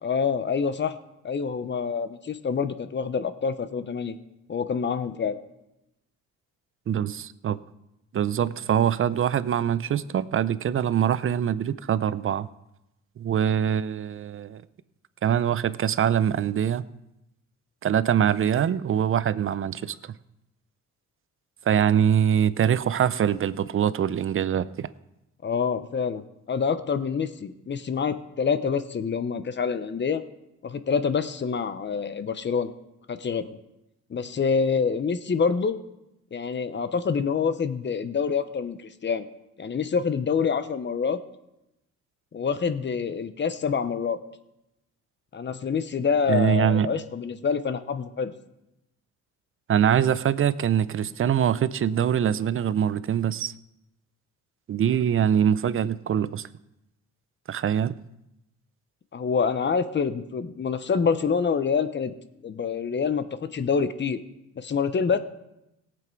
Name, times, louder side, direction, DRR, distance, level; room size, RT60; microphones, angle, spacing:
voice 1, 0.0-0.9 1.2-4.2 4.5-5.4 25.4-26.2 26.5-30.2 30.6-32.7 33.1-33.6 34.1-35.8 36.3-39.3 39.6-41.2 42.3-44.2 45.3-48.4 59.1-62.1 62.4-63.2 63.5-64.2 64.6-65.2, left 6 dB, 35° left, 0.9 m, -26 dB
voice 2, 6.9-7.6 8.1-12.5 13.2-14.6 15.2-16.8 17.8-20.0 21.7-24.9 46.3-46.9 49.7-53.5 54.7-56.5 57.5-58.0, right 9 dB, 45° right, 0.6 m, -23 dB
17.5 x 8.0 x 4.6 m
cardioid pair, 90°, 30 cm